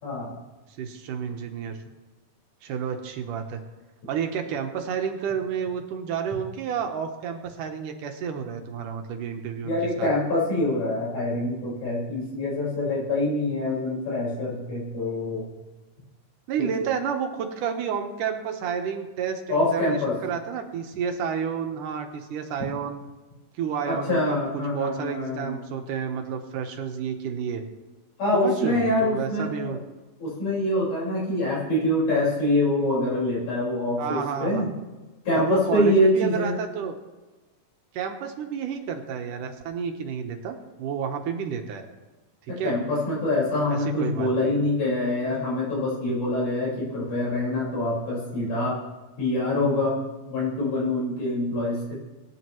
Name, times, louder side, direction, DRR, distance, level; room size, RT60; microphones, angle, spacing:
voice 1, 0.0-0.3 9.6-15.4 19.5-20.2 23.8-25.6 28.2-29.8 30.2-34.7 35.3-36.6 42.5-48.8 49.2-50.0 50.3-51.9, left 1 dB, 65° left, -6 dB, 6.4 m, -25 dB
voice 2, 0.8-1.8 2.6-3.6 4.1-10.1 16.5-23.0 23.6-24.4 24.7-27.6 28.3-29.8 34.0-34.7 35.3-37.0 37.9-41.8 42.6-42.7 43.7-44.6, right 7 dB, 75° right, 4 dB, 2.6 m, -30 dB
21.5 x 9.9 x 3.1 m, 1.2 s
omnidirectional pair, 3.8 m